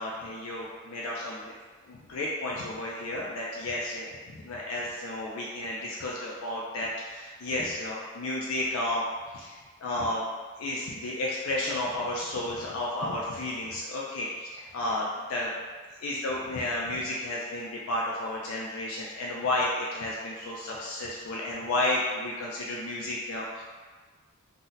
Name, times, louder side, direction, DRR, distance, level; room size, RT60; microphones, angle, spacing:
voice 1, 0.0-1.5 1.9-9.0 9.3-10.3 10.6-15.5 16.0-23.6, left 1 dB, 80° left, -4 dB, 0.4 m, -32 dB
2.7 x 2.1 x 3.8 m, 1.4 s
head